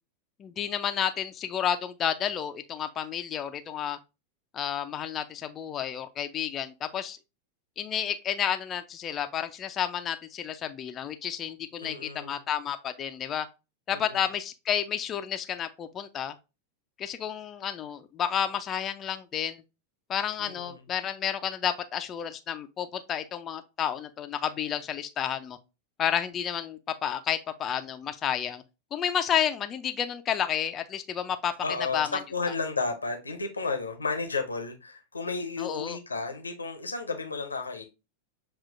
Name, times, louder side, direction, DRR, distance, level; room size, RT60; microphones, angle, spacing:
voice 1, 0.4-4.0 4.5-7.2 7.8-13.5 13.9-16.3 17.0-19.6 20.1-25.6 26.0-28.6 28.9-31.5 31.9-32.2 35.6-36.0, left 9 dB, 25° left, 0.4 m, -31 dB
voice 2, 11.8-12.4 13.9-14.2 20.4-20.8 31.6-37.8, left 4 dB, 80° left, 0.7 m, -33 dB
7.2 x 2.4 x 2.5 m
figure-of-eight pair, 90°, 0 cm